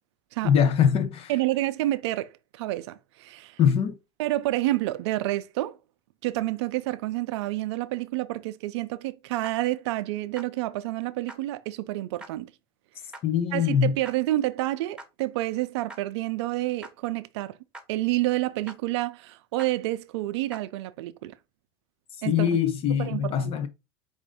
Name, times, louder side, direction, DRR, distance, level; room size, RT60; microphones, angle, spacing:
voice 1, 0.4-1.3 3.6-4.0 13.2-13.9 22.3-23.7, left 8 dB, 45° left, 0.6 m, -22 dB
voice 2, 1.3-3.6 4.2-5.8 6.2-12.5 13.0-13.1 13.5-17.6 17.9-21.4 22.2-22.6 23.0-23.5, right 17 dB, 80° right, 0.4 m, -29 dB
sound 1, 9.4-9.5 10.3-10.5 11.3-11.4 12.2-12.3 13.1-13.2 14.0-14.1 15.0-15.1 15.9-16.0 16.8-16.9 17.7-17.8 18.7-18.8 19.6-19.7 20.5-20.6, right 2 dB, 5° right, 1.0 m, -42 dB
4.8 x 2.6 x 3.5 m
supercardioid pair, 110°, 14 cm